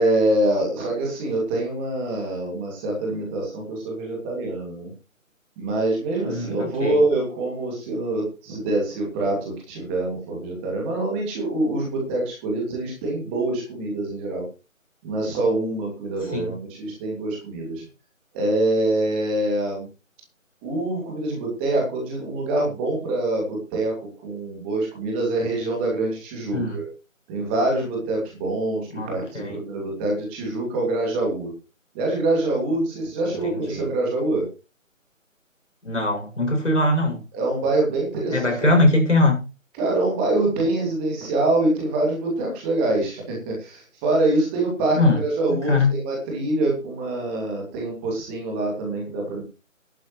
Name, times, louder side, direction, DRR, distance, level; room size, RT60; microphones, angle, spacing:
voice 1, 0.0-4.9 5.6-14.4 15.0-17.8 18.3-19.9 20.6-26.9 27.3-31.5 31.9-34.5 37.3-38.7 39.8-49.4, right 2 dB, 10° right, 2.3 m, -25 dB
voice 2, 6.3-7.0 16.3-16.5 26.5-26.8 28.9-29.6 33.7-33.8 35.8-37.2 38.3-39.5 45.0-45.2 45.5-46.0, left 2 dB, 60° left, 7.1 m, -21 dB
15.0 x 11.5 x 3.1 m
figure-of-eight pair, 155°, 40 cm